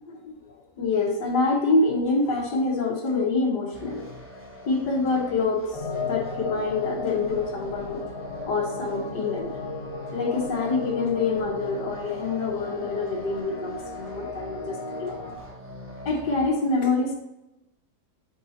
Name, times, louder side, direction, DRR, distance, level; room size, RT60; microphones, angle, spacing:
voice 1, 0.1-4.1 4.7-8.0 8.5-9.5 10.1-15.2 16.1-17.1, left 3 dB, 85° left, -1 dB, 1.8 m, -26 dB
Psycho Laundry, 3.7-16.5, right 1 dB, 10° right, 0.7 m, -44 dB
sound 1, 5.7-15.4, left 3 dB, 30° left, 0.6 m, -35 dB
8.6 x 5.3 x 2.8 m, 0.89 s
omnidirectional pair, 1.8 m